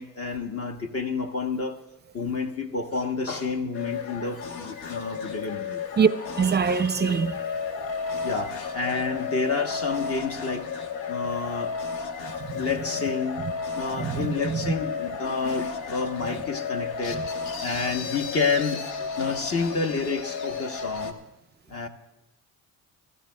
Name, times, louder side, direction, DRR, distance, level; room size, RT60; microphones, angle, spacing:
voice 1, 0.0-1.8 2.1-5.8 8.2-10.7 11.1-11.8 12.5-13.4 13.8-17.3 17.6-21.2 21.7-21.9, left 4 dB, 40° left, 1.0 m, -29 dB
sound 1, 3.7-21.1, left 5 dB, 80° left, 1.3 m, -33 dB
voice 2, 6.4-7.4 12.4-12.6 13.9-14.6, right 6 dB, 30° right, 0.5 m, -23 dB
21.5 x 13.5 x 2.2 m
cardioid pair, 105°, 36 cm